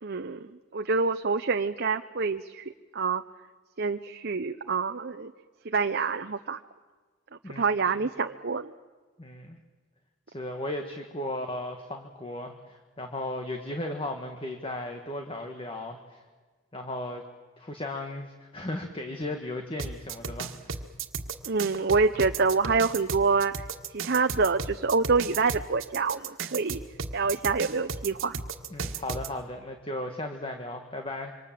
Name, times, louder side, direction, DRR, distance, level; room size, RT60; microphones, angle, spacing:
voice 1, 0.0-2.6 2.9-3.2 3.8-5.3 5.6-6.6 7.6-8.7 21.4-23.6 23.9-26.8 27.1-28.4, right 4 dB, 50° right, 7 dB, 0.8 m, -26 dB
voice 2, 7.4-8.0 9.2-9.6 10.3-16.2 16.7-17.2 17.6-20.8 28.7-31.3, left 1 dB, 25° left, 4 dB, 1.7 m, -36 dB
sound 1, 19.8-29.3, right 5 dB, 70° right, 1.7 m, -34 dB
27.5 x 25.0 x 7.6 m, 1.4 s
head